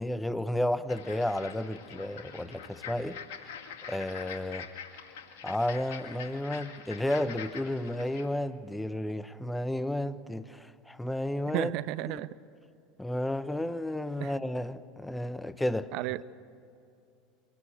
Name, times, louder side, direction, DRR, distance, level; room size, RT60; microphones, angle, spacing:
voice 1, 0.0-3.2 3.9-4.7 5.4-11.7 12.1-12.2 13.0-15.9, left 1 dB, 5° left, 0.9 m, -32 dB
sound 1, 0.9-8.3, left 7 dB, 75° left, 1.9 m, -45 dB
voice 2, 11.5-12.3 14.2-14.4 15.9-16.2, right 16 dB, 60° right, 0.5 m, -33 dB
23.5 x 18.0 x 7.9 m
hypercardioid pair, 80°, 0 cm